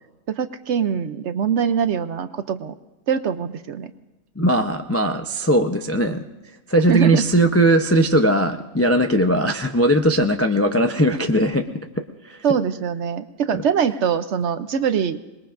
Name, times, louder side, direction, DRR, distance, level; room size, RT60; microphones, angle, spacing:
voice 1, 0.3-2.7 3.1-3.9 6.9-7.2 12.4-15.2, right 7 dB, 60° right, 11 dB, 0.8 m, -23 dB
voice 2, 4.4-6.2 6.7-11.6 12.2-12.4 13.5-13.6, right 1 dB, 25° left, 4 dB, 0.3 m, -19 dB
26.5 x 21.0 x 2.5 m, 1.1 s
omnidirectional pair, 1.5 m